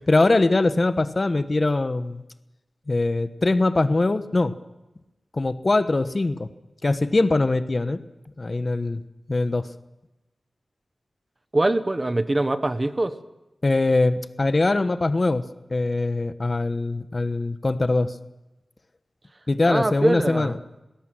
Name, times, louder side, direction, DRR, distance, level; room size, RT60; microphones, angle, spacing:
voice 1, 0.1-2.2 2.9-4.5 5.3-6.5 6.8-8.0 8.4-9.0 9.3-9.7 13.6-15.4 15.7-18.1 19.5-20.6, left 2 dB, 40° left, 12 dB, 1.1 m, -22 dB
voice 2, 11.5-13.1 19.7-20.5, right 2 dB, 30° right, 12 dB, 1.1 m, -23 dB
20.5 x 17.5 x 7.7 m, 1.0 s
wide cardioid pair, 75°, 0 cm